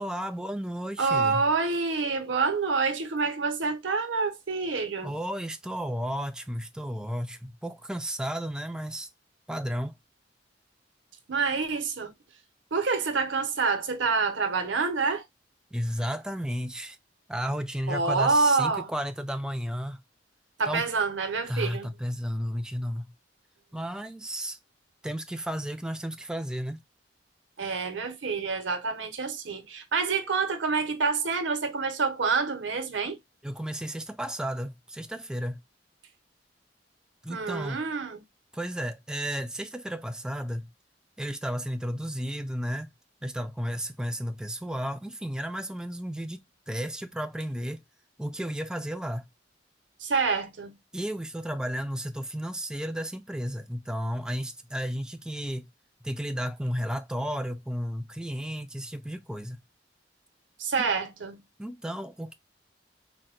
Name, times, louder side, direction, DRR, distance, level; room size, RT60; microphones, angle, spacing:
voice 1, 0.0-1.5 5.0-9.1 9.5-9.9 15.7-17.0 17.3-20.0 20.7-20.9 21.5-23.1 23.7-24.6 25.0-26.8 33.4-35.6 37.2-37.8 38.5-40.7 41.2-42.9 43.2-46.4 46.7-47.8 48.2-49.2 50.9-55.7 56.0-59.6 60.8-60.9 61.6-62.3, equal, 5° right, 0.3 m, -33 dB
voice 2, 1.0-5.2 11.3-12.1 12.7-15.2 17.9-18.9 20.6-21.9 27.6-33.2 37.3-38.2 50.0-50.7 60.6-61.4, right 4 dB, 90° right, 0.8 m, -27 dB
4.1 x 2.1 x 2.4 m
head